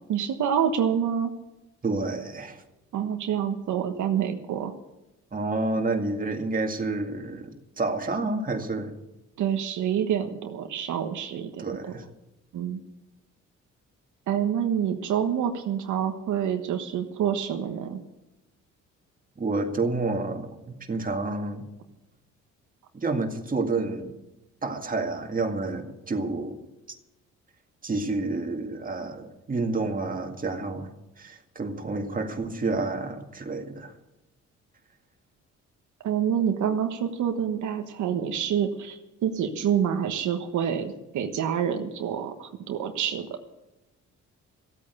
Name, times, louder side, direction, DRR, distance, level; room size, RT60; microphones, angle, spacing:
voice 1, 0.1-1.3 2.9-4.7 9.4-11.6 12.5-12.8 14.3-18.0 36.0-43.3, right 8 dB, 75° right, 5 dB, 1.3 m, -27 dB
voice 2, 1.8-2.6 5.3-8.9 11.6-12.0 19.4-21.7 22.9-24.2 24.6-26.6 27.8-30.9 31.2-33.9, right 3 dB, 30° right, 4 dB, 2.2 m, -29 dB
15.0 x 8.7 x 8.3 m, 0.97 s
cardioid pair, 90°, 30 cm